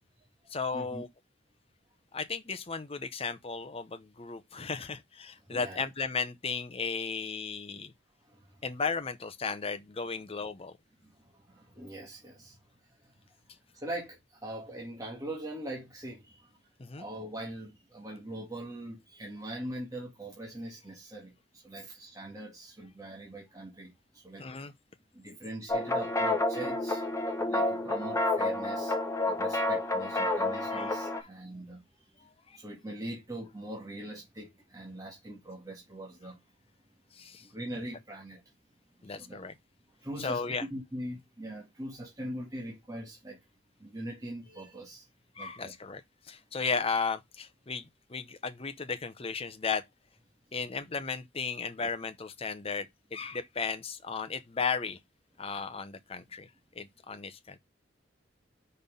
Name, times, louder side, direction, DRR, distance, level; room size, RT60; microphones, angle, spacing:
voice 1, 0.5-1.1 2.1-7.9 8.6-10.7 16.8-17.1 24.4-24.7 30.7-31.3 32.5-32.6 37.1-37.5 39.0-39.5 40.2-40.6 45.4-46.0 46.3-49.8 50.5-55.0 55.4-56.5 56.7-57.6, left 5 dB, 30° left, 0.8 m, -35 dB
voice 2, 5.5-5.8 8.2-8.6 11.0-12.6 13.0-13.1 13.7-16.5 17.0-24.7 25.1-27.0 27.5-29.0 29.3-32.3 32.6-36.4 37.4-38.4 39.0-39.5 40.0-43.4 43.8-45.1 45.4-45.7, right 1 dB, 20° right, 1.9 m, -42 dB
sound 1, 25.7-31.2, left 2 dB, 15° left, 1.4 m, -29 dB
5.5 x 4.4 x 5.2 m
head